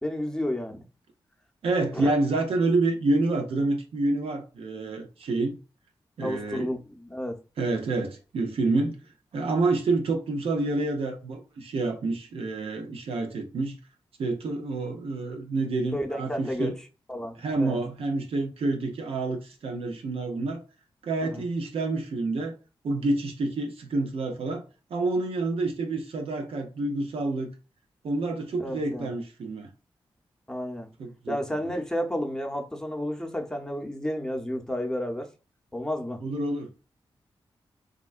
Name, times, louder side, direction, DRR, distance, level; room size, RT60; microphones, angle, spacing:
voice 1, 0.0-0.8 1.9-2.1 6.2-7.4 15.9-16.7 17.1-17.8 21.3-21.4 28.6-29.1 30.5-30.9 31.3-35.3 35.7-36.2, equal, 5° left, 0.7 m, -31 dB
voice 2, 1.6-5.6 6.2-6.7 7.6-9.0 9.3-13.8 14.2-16.7 17.4-20.6 21.0-22.5 22.8-24.6 24.9-27.5 28.0-29.7 31.0-31.7 36.2-36.7, right 2 dB, 75° right, 0.6 m, -28 dB
3.6 x 2.1 x 2.4 m
cardioid pair, 45°, 10 cm